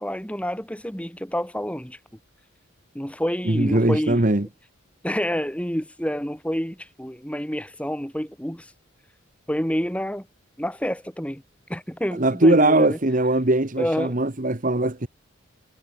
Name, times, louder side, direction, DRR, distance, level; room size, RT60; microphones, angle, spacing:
voice 1, 0.0-2.0 2.9-4.2 5.0-8.7 9.5-10.3 10.6-11.4 11.7-13.0 13.8-14.2, equal, 5° left, 2.6 m, -28 dB
voice 2, 3.4-4.5 12.1-15.1, right 2 dB, 40° right, 1.3 m, -20 dB
head